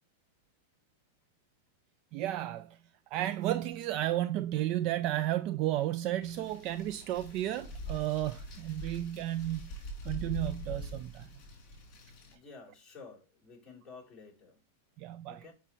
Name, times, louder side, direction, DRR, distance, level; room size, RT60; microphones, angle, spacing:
voice 1, 2.1-2.8 3.1-9.7 10.0-11.3 15.0-15.4, right 13 dB, 35° right, 0.3 m, -33 dB
sound 1, 6.2-12.3, right 1 dB, 35° left, 3.1 m, -43 dB
voice 2, 12.3-14.6 15.3-15.5, left 4 dB, 5° left, 3.4 m, -51 dB
7.2 x 5.6 x 3.0 m
supercardioid pair, 165°, 0 cm